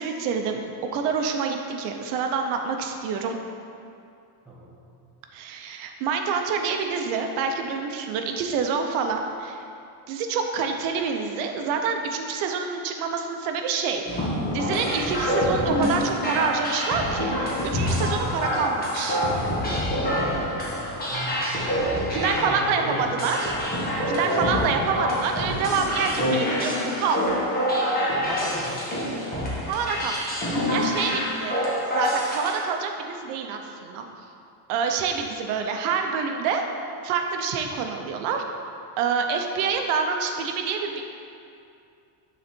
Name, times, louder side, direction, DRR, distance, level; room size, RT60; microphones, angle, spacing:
voice 1, 0.0-3.4 5.3-9.6 10.1-17.3 17.6-19.2 22.1-23.5 24.1-27.2 29.7-30.3 30.7-31.5 31.9-34.0 34.7-36.6 37.0-38.4 39.0-41.0, right 5 dB, 85° right, 4 dB, 0.9 m, -27 dB
voice 2, 4.4-4.8 20.2-20.6 20.9-21.5 22.2-23.3 28.2-29.2, right 1 dB, ahead, -6 dB, 1.1 m, -37 dB
sound 1, 14.1-32.5, equal, 20° left, 1.5 m, -26 dB
9.5 x 4.1 x 4.4 m, 2.5 s
cardioid pair, 155°, 50 cm